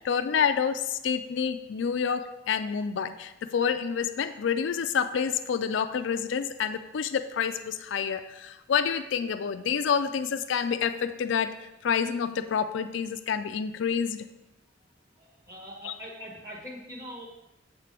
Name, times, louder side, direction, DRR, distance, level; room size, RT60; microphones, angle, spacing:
voice 1, 0.0-11.5 11.8-14.3 15.8-15.9, left 7 dB, 70° left, 9 dB, 0.4 m, -28 dB
voice 2, 15.2-17.3, equal, 15° right, -3 dB, 1.7 m, -42 dB
7.4 x 7.1 x 3.4 m, 0.95 s
head